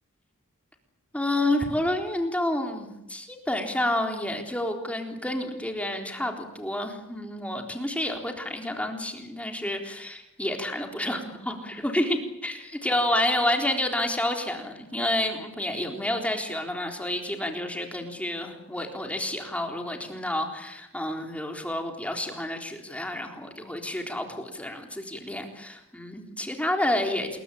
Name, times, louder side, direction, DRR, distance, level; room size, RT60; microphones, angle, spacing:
voice 1, 1.1-27.4, left 1 dB, 5° left, 3 dB, 3.8 m, -29 dB
27.5 x 22.5 x 8.6 m, 0.81 s
head